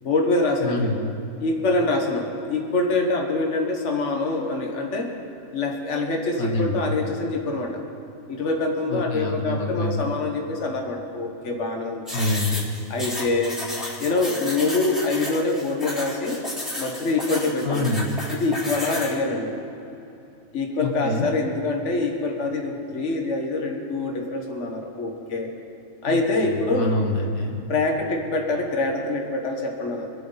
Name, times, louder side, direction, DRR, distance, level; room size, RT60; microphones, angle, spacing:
voice 1, 0.0-0.9 1.4-5.1 5.5-7.8 8.3-12.0 12.9-13.6 14.0-16.4 16.8-17.9 18.3-19.5 20.5-25.5 26.0-26.9 27.7-30.1, left 2 dB, 60° left, 2 dB, 1.8 m, -25 dB
voice 2, 0.6-1.1 6.4-6.9 8.9-10.1 12.1-12.7 17.6-18.2 20.8-21.3 26.1-27.6, left 1 dB, 90° left, 1 dB, 1.9 m, -26 dB
sound 1, 12.1-19.1, left 1 dB, ahead, 3.7 m, -32 dB
26.5 x 9.2 x 4.1 m, 2.8 s
omnidirectional pair, 1.4 m